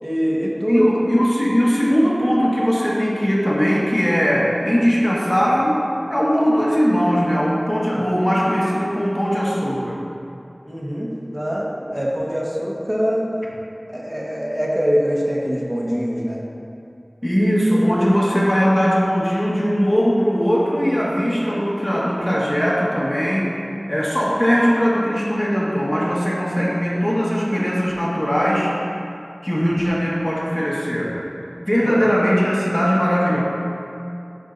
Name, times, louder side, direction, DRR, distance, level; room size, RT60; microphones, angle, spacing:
voice 1, 0.0-0.8 10.7-13.2 13.9-16.4 31.8-32.0, equal, 25° right, -4 dB, 1.3 m, -23 dB
voice 2, 0.6-5.8 6.1-10.0 17.2-23.5 23.9-28.7 29.4-31.2 31.6-33.4, equal, 20° left, -6 dB, 1.6 m, -19 dB
11.5 x 4.6 x 2.6 m, 2.6 s
wide cardioid pair, 40°, 0 cm